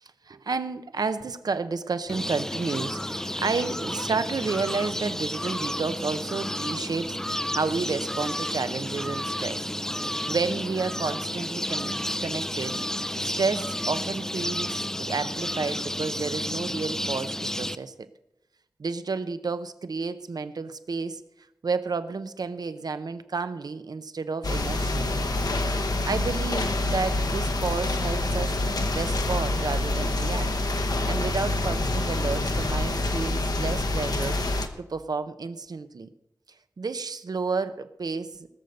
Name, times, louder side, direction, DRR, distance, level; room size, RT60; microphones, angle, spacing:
voice 1, 0.3-9.6 10.0-12.8 13.2-18.1 18.8-21.2 21.6-25.3 26.1-28.6 28.9-30.5 31.0-36.1 36.8-38.5, right 4 dB, 80° right, 11 dB, 0.8 m, -31 dB
sound 1, 2.1-17.7, left 1 dB, 10° left, 0.5 m, -31 dB
sound 2, 24.4-34.7, left 2 dB, 75° left, 1.1 m, -26 dB
18.5 x 6.9 x 6.6 m, 0.89 s
wide cardioid pair, 85°, 7 cm